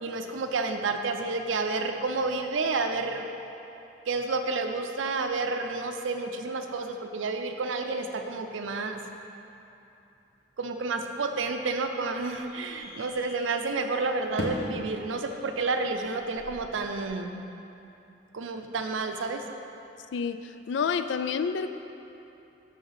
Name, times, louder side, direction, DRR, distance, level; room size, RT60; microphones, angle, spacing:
voice 1, 0.0-3.2 4.1-9.0 10.6-17.3 18.3-19.4, right 3 dB, 90° right, 6 dB, 0.5 m, -30 dB
sound 1, 11.1-17.1, left 1 dB, 55° left, 0.8 m, -41 dB
voice 2, 20.1-21.7, left 6 dB, 70° left, 10 dB, 0.3 m, -29 dB
6.4 x 5.5 x 5.8 m, 2.9 s
head